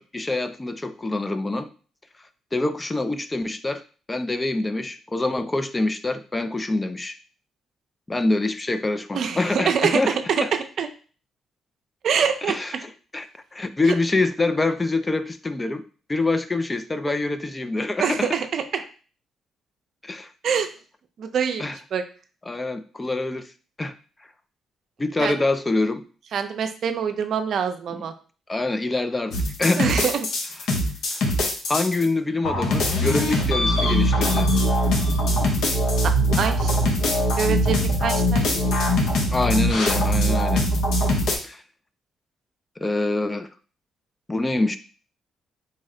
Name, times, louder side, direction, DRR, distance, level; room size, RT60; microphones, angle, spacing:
voice 1, 0.0-1.7 2.5-3.8 4.1-7.2 8.1-10.5 12.5-13.3 13.5-15.8 16.1-18.4 20.0-20.3 21.6-21.8 22.5-23.5 23.8-23.9 25.0-26.0 27.9-28.1 28.5-29.3 29.6-30.0 31.1-31.2 31.7-34.5 39.3-40.6 41.4-41.6 42.8-43.5 44.3-44.8, left 2 dB, 20° left, 11 dB, 0.3 m, -25 dB
voice 2, 9.1-10.9 12.0-12.6 18.0-18.6 20.4-20.7 21.2-22.0 25.2-25.3 26.3-28.1 29.8-30.3 36.4-36.7 37.4-38.8, right 7 dB, 65° right, 7 dB, 0.5 m, -25 dB
sound 1, 29.3-32.0 32.4-41.4, equal, 75° left, 0.8 m, -22 dB
4.1 x 2.1 x 3.7 m, 0.38 s
cardioid pair, 90°, 0 cm